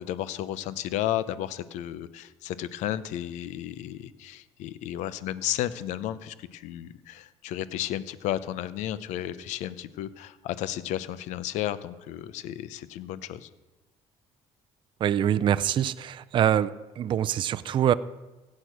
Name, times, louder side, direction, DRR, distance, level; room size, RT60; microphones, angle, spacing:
voice 1, 0.0-13.5, left 12 dB, 80° left, 15 dB, 0.8 m, -33 dB
voice 2, 15.0-17.9, right 10 dB, 40° right, 13 dB, 0.5 m, -24 dB
16.5 x 8.7 x 6.3 m, 1.1 s
cardioid pair, 120°, 12 cm